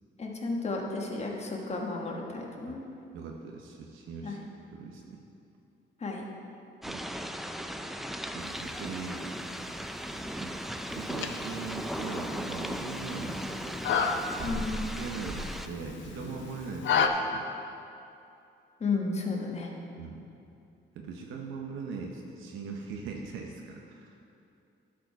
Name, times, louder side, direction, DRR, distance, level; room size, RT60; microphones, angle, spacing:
voice 1, 0.2-2.8 4.2-4.4 6.0-6.2 14.4-14.8 18.8-19.7, left 3 dB, 35° left, 0 dB, 1.3 m, -33 dB
voice 2, 3.1-4.4 4.7-5.2 6.8-7.0 8.3-9.3 10.4-10.5 10.9-13.8 14.4-14.6 14.9-17.4 20.0-20.2 20.9-24.1, right 4 dB, 85° right, 1 dB, 0.8 m, -40 dB
sound 1, 6.8-15.7, equal, ahead, 0.4 m, -37 dB
sound 2, 8.4-16.7, equal, 60° right, 2.0 m, -45 dB
sound 3, 10.9-17.1, left 6 dB, 70° left, 0.6 m, -33 dB
11.5 x 4.8 x 4.6 m, 2.6 s
cardioid pair, 90°, 20 cm